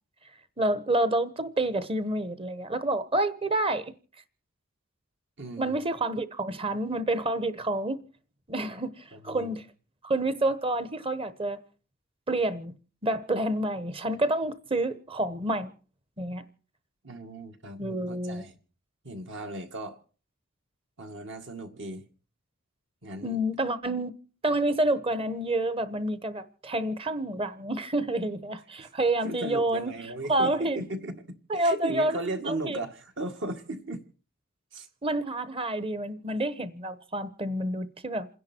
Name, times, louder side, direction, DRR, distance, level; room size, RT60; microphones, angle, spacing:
voice 1, 0.6-3.9 5.6-8.0 8.5-9.6 10.0-11.6 12.3-12.7 13.0-15.7 16.2-16.5 17.8-18.5 23.2-24.1 24.4-29.9 30.3-30.8 31.5-32.2 32.5-32.8 35.0-38.3, right 1 dB, 25° right, 1.1 m, -28 dB
voice 2, 5.4-5.8 9.1-9.5 17.0-17.8 18.1-18.6 19.0-20.0 21.0-22.0 23.0-23.4 28.8-28.9 29.2-31.2 31.5-34.0 34.7-34.9, right 2 dB, 60° right, 2.1 m, -36 dB
28.0 x 10.5 x 4.5 m
head